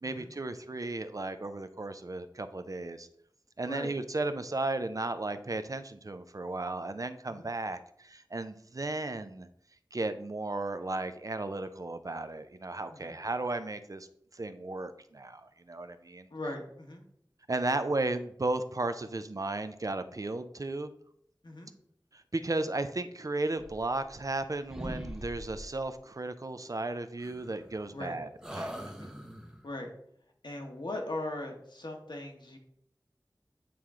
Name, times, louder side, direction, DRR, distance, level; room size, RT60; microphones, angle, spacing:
voice 1, 0.0-3.1 3.6-9.5 9.9-14.1 14.3-16.3 17.5-20.9 22.1-28.3 28.5-28.9, right 2 dB, 45° right, 10 dB, 0.4 m, -35 dB
voice 2, 16.3-17.0 21.4-21.7 27.9-28.2 28.9-29.1 29.6-29.9 30.4-32.6, left 1 dB, 70° left, 2 dB, 1.1 m, -39 dB
sound 1, 23.6-24.4 24.7-25.9 27.2-28.0 28.4-29.7, equal, 10° right, 0.7 m, -43 dB
8.4 x 3.0 x 3.6 m, 0.69 s
wide cardioid pair, 50°, 8 cm